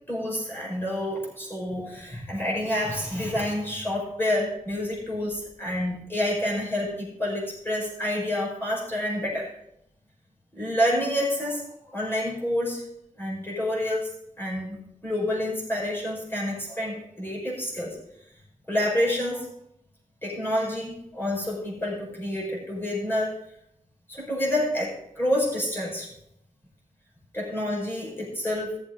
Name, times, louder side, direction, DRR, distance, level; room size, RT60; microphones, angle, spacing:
voice 1, 0.1-9.5 10.5-12.8 13.2-14.1 14.4-18.0 18.7-19.5 20.2-23.3 24.1-26.1 27.3-28.7, left 1 dB, 15° left, -4 dB, 5.0 m, -28 dB
15.5 x 7.2 x 3.8 m, 0.78 s
wide cardioid pair, 115°, 14 cm